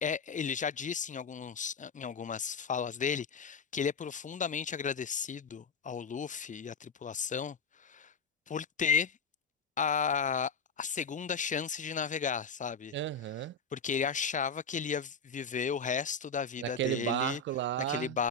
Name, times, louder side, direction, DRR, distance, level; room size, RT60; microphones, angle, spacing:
voice 1, 0.0-8.1 8.5-9.1 9.8-10.5 10.8-12.9 13.7-17.4 17.9-18.3, left 6 dB, 40° left, 1.2 m, -33 dB
voice 2, 12.9-13.5 16.6-18.2, right 14 dB, 70° right, 0.6 m, -33 dB
cardioid pair, 90°, 20 cm